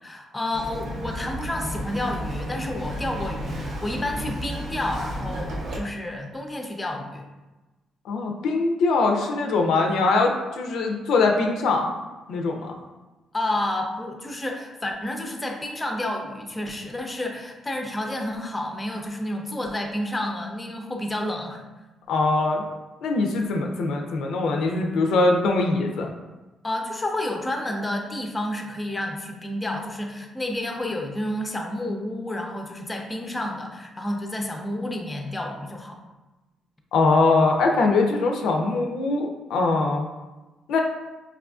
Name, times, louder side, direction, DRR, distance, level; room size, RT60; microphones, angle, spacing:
voice 1, 0.0-7.3 13.3-21.6 26.6-36.0, left 1 dB, 15° left, 2 dB, 0.5 m, -30 dB
Bird vocalization bird call bird song, 0.5-5.8, equal, 65° right, 0.6 m, -32 dB
voice 2, 8.0-11.9 12.3-12.8 22.1-22.6 23.0-26.1 36.9-40.1 40.7-40.8, left 3 dB, 80° left, 2 dB, 0.4 m, -22 dB
4.7 x 2.4 x 2.3 m, 1.1 s
cardioid pair, 90°, 0 cm